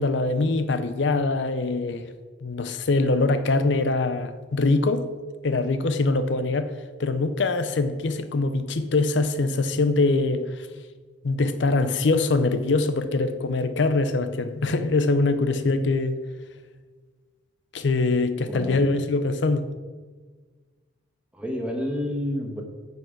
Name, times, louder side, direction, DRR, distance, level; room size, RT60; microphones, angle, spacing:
voice 1, 0.0-2.1 2.4-5.1 5.4-6.7 7.0-10.7 11.2-16.2 17.7-19.7, left 3 dB, 70° left, 0.6 m, -23 dB
voice 2, 18.5-18.9 21.3-22.6, equal, 5° right, 1.3 m, -29 dB
9.2 x 5.5 x 5.8 m
head